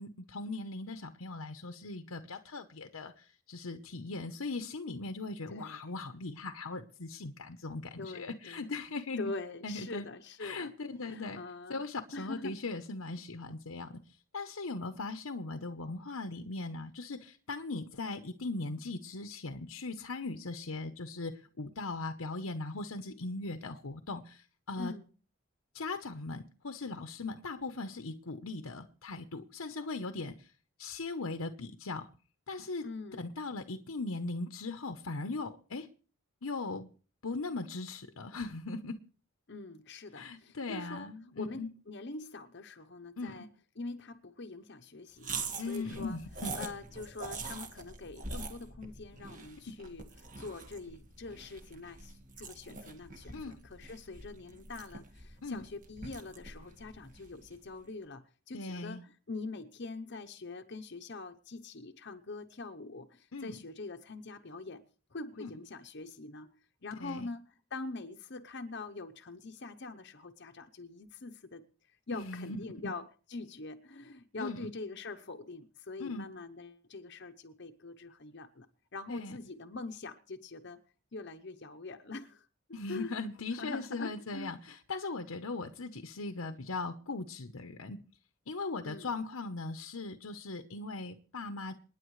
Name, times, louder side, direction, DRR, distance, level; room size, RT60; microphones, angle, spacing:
voice 1, 0.0-9.3 9.6-10.1 10.4-11.4 11.7-24.9 25.7-30.5 30.8-32.1 32.5-32.9 33.2-35.9 36.4-36.9 37.2-38.9 40.1-41.7 43.2-43.5 45.6-46.5 49.7-49.8 53.3-53.5 55.4-55.7 58.5-59.0 63.3-63.6 65.4-65.5 67.0-67.3 72.1-72.9 74.4-74.7 76.0-76.3 79.1-79.4 82.7-88.0 88.5-91.7, left 3 dB, 80° left, 1.0 m, -39 dB
voice 2, 5.5-5.9 8.0-8.7 9.2-10.7 11.0-11.8 12.1-12.6 24.8-25.1 32.8-33.2 39.5-43.5 43.8-46.2 46.6-50.0 50.4-64.8 65.1-66.5 66.8-78.7 78.9-80.8 81.1-82.5 82.9-83.1 83.6-84.6 88.8-89.1, left 3 dB, 50° left, 0.9 m, -44 dB
sound 1, 45.2-57.7, right 4 dB, 35° right, 1.8 m, -44 dB
27.5 x 10.0 x 3.2 m
head